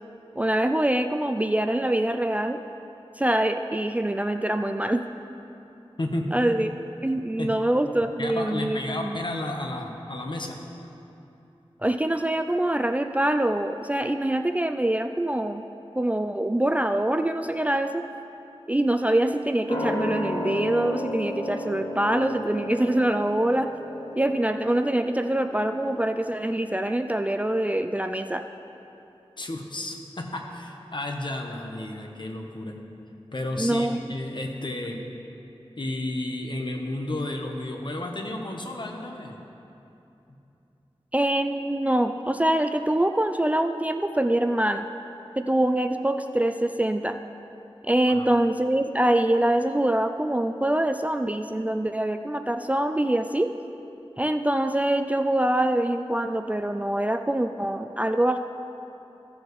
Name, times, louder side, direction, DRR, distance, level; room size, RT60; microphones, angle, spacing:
voice 1, 0.4-2.6 3.2-5.0 6.3-6.7 7.0-9.2 11.8-15.6 16.0-18.0 18.7-23.7 24.2-28.4 33.6-34.0 41.1-44.9 45.4-47.2 47.8-53.5 54.2-58.4, right 1 dB, 15° right, 7 dB, 0.3 m, -24 dB
voice 2, 8.2-10.6 29.4-32.8 33.3-35.0 35.8-39.4 48.1-48.3, left 1 dB, 50° left, 2 dB, 1.1 m, -32 dB
sound 1, 19.7-26.8 27.1-27.2, left 1 dB, 85° left, 2.4 m, -33 dB
16.0 x 7.1 x 3.2 m, 2.9 s
wide cardioid pair, 60°, 10 cm